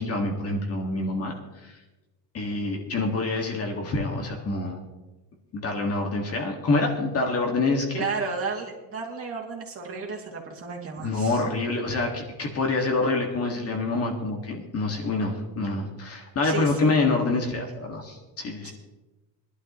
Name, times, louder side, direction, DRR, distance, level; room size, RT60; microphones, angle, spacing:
voice 1, 0.0-1.3 1.6-1.7 2.3-4.8 5.5-8.0 11.0-18.7, left 3 dB, 35° left, 1 dB, 2.0 m, -26 dB
voice 2, 7.9-11.4 16.4-17.0 18.6-18.7, right 5 dB, 35° right, -2 dB, 2.6 m, -33 dB
21.0 x 12.0 x 3.1 m, 1.1 s
cardioid pair, 145°, 41 cm